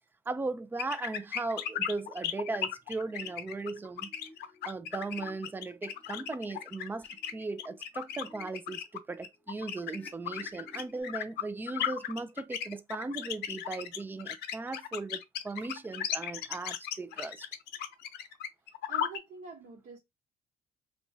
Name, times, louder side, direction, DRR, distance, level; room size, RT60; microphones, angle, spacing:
voice 1, 0.3-4.1 4.7-17.5, right 3 dB, 10° right, 0.3 m, -37 dB
sound 1, 0.8-19.2, left 10 dB, 75° left, 0.6 m, -36 dB
sound 2, 2.3-2.6 2.9-3.3 3.8-8.9 9.2-11.0, left 1 dB, 10° left, 1.2 m, -57 dB
voice 2, 18.9-20.0, right 6 dB, 55° right, 1.0 m, -45 dB
3.0 x 2.2 x 2.6 m
cardioid pair, 110°, 17 cm